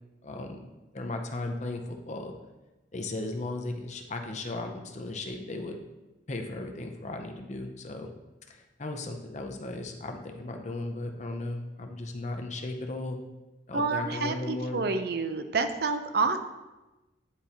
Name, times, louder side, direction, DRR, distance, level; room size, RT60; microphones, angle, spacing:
voice 1, 0.2-2.4 2.9-5.8 6.3-8.1 8.5-13.2 13.7-14.8, left 2 dB, 40° left, 4 dB, 0.6 m, -36 dB
voice 2, 13.7-16.4, right 4 dB, 60° right, 8 dB, 0.5 m, -28 dB
9.6 x 4.2 x 2.9 m, 1.1 s
head